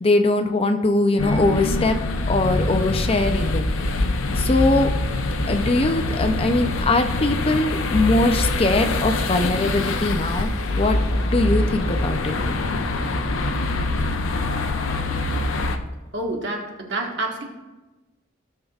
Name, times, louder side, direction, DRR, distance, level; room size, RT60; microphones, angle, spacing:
voice 1, 0.0-2.0 2.3-3.7 4.4-4.9 5.5-11.0 11.3-12.4, left 2 dB, 30° left, 7 dB, 0.5 m, -21 dB
sound 1, 1.2-15.8, left 2 dB, 80° left, 0.7 m, -24 dB
voice 2, 16.1-17.4, right 2 dB, 60° right, 1 dB, 1.5 m, -28 dB
16.5 x 6.6 x 2.4 m, 1.2 s
head